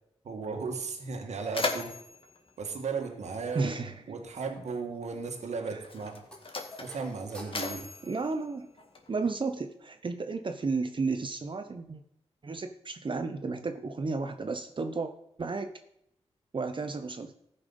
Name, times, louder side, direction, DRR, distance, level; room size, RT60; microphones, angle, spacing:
voice 1, 0.2-2.0 2.6-3.8 4.1-6.3 6.8-7.9, right 5 dB, 85° right, 4 dB, 1.6 m, -35 dB
Mechanisms, 0.6-0.7 1.0-3.8 4.8-4.9 5.7-9.3, left 3 dB, 50° left, 1.8 m, -38 dB
voice 2, 3.5-4.0 5.7-5.8 8.0-8.7 9.1-12.0 12.4-15.1 15.4-15.7 16.5-17.3, right 4 dB, 45° right, 6 dB, 0.8 m, -33 dB
sound 1, 6.3-9.0, right 1 dB, 10° left, 3.5 m, -49 dB
14.5 x 5.6 x 5.4 m, 0.77 s
cardioid pair, 65°, 11 cm